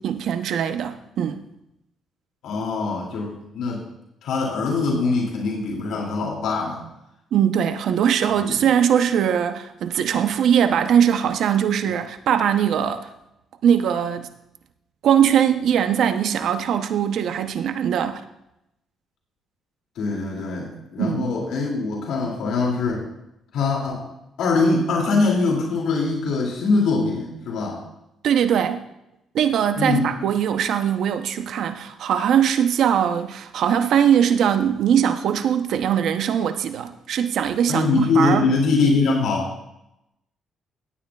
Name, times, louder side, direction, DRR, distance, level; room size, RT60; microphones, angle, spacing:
voice 1, 0.0-1.4 7.3-13.1 13.6-14.3 15.0-18.2 21.0-21.3 28.2-28.8 29.3-38.5, right 8 dB, 75° right, 0.7 m, -21 dB
voice 2, 2.4-3.8 4.2-6.8 8.4-8.6 20.0-23.0 23.5-24.0 24.4-27.8 29.8-30.1 37.7-39.5, left 3 dB, 80° left, 2.5 m, -22 dB
17.0 x 9.1 x 2.3 m
cardioid pair, 90°, 0 cm